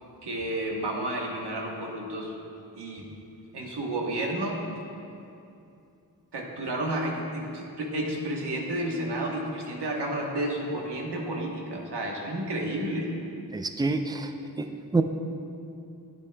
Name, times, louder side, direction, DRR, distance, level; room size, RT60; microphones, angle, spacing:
voice 1, 0.2-2.3 2.8-3.1 3.5-4.6 6.3-13.1, right 1 dB, 80° right, -1 dB, 1.2 m, -31 dB
voice 2, 13.5-14.3 14.6-15.0, right 3 dB, 10° right, 7 dB, 0.4 m, -27 dB
10.5 x 8.2 x 2.2 m, 2.7 s
cardioid pair, 40°, 40 cm